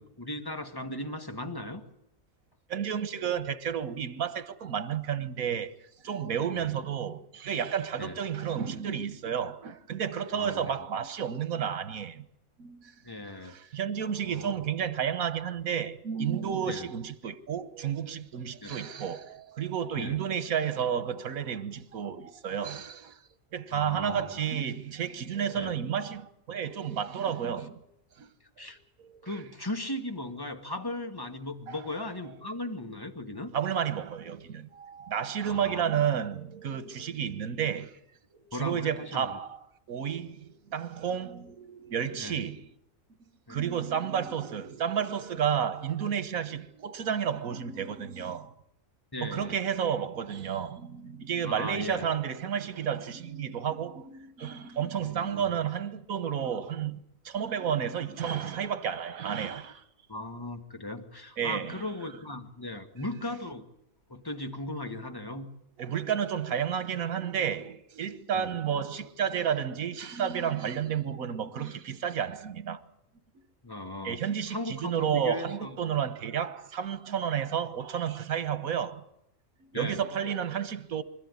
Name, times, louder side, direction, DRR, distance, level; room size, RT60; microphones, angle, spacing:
voice 1, 0.0-1.8 6.5-6.7 8.0-8.2 10.3-10.7 13.0-13.5 14.2-14.5 16.7-16.9 18.6-18.8 20.0-20.2 23.7-24.3 25.5-25.7 28.6-28.8 29.2-33.5 35.4-35.8 38.5-39.3 42.2-42.4 43.5-43.7 49.1-49.6 51.4-52.1 55.0-55.5 60.1-63.6 64.1-65.5 68.3-68.5 73.6-75.8 79.7-80.0, left 1 dB, 15° left, 1.9 m, -37 dB
voice 2, 2.7-5.7 6.0-12.3 12.6-12.9 13.4-23.2 23.5-27.9 28.2-28.3 29.0-29.4 31.7-31.8 32.3-32.6 33.5-38.0 38.3-39.6 39.9-42.7 43.5-48.5 49.2-59.8 61.4-62.1 65.8-72.8 74.0-79.0 79.6-81.0, right 8 dB, 85° right, 1.6 m, -31 dB
25.5 x 14.0 x 9.7 m
omnidirectional pair, 1.4 m